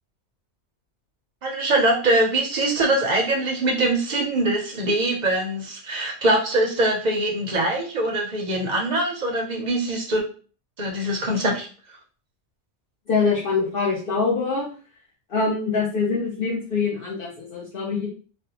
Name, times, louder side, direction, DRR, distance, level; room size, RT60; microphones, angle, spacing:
voice 1, 1.4-10.2 10.8-11.7, right 1 dB, 50° right, 0 dB, 0.5 m, -23 dB
voice 2, 13.1-14.6 15.3-18.1, left 4 dB, 60° left, -4 dB, 0.7 m, -24 dB
2.5 x 2.0 x 2.8 m, 0.39 s
omnidirectional pair, 1.2 m